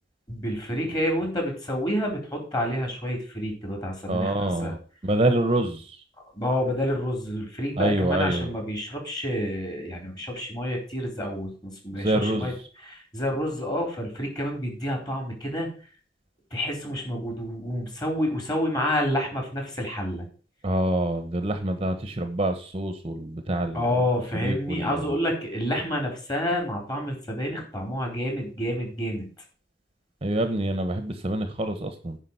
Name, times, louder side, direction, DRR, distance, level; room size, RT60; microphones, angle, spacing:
voice 1, 0.3-4.7 6.3-12.5 12.9-15.7 16.5-20.3 23.7-29.3, equal, 25° left, 1 dB, 4.2 m, -29 dB
voice 2, 4.1-4.8 5.0-6.0 7.8-8.5 11.9-12.6 20.6-24.0 24.3-25.2 30.2-32.2, right 1 dB, 30° right, 8 dB, 1.1 m, -26 dB
9.9 x 5.1 x 8.1 m, 0.39 s
head